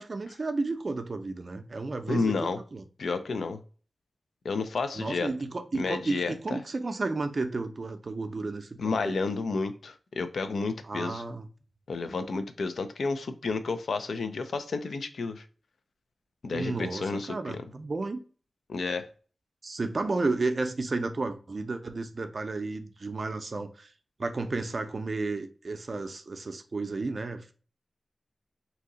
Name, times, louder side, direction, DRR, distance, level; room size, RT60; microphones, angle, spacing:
voice 1, 0.0-2.8 4.9-9.2 10.9-11.5 16.5-18.2 19.6-23.9 24.2-27.5, right 3 dB, 45° right, 0.5 m, -32 dB
voice 2, 2.1-2.6 3.0-3.6 4.4-5.3 5.7-6.6 8.8-11.2 11.9-15.4 16.4-17.6 18.7-19.1, left 4 dB, 90° left, 0.4 m, -31 dB
2.8 x 2.7 x 3.7 m
wide cardioid pair, 130°, 0 cm